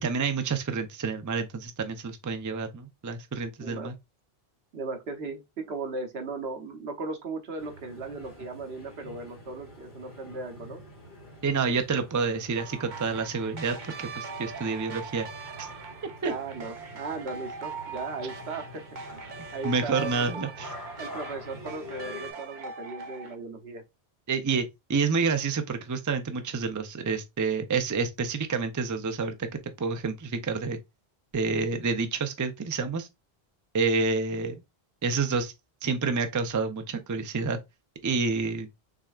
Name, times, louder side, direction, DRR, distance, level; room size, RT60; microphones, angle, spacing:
voice 1, 0.0-4.0 11.4-15.3 15.6-15.7 16.2-16.3 19.6-20.7 24.3-30.8 31.3-33.1 33.7-34.6 35.0-35.5 35.8-37.6 38.0-38.7, right 4 dB, 25° right, 0.4 m, -28 dB
voice 2, 3.6-3.9 4.7-10.8 16.2-19.0 19.5-20.5 21.0-23.8, right 3 dB, 80° right, 1.2 m, -37 dB
sound 1, 7.6-22.3, left 1 dB, 50° left, 2.6 m, -46 dB
sound 2, 12.6-23.3, right 4 dB, 50° right, 0.9 m, -41 dB
6.0 x 3.4 x 2.4 m
omnidirectional pair, 1.1 m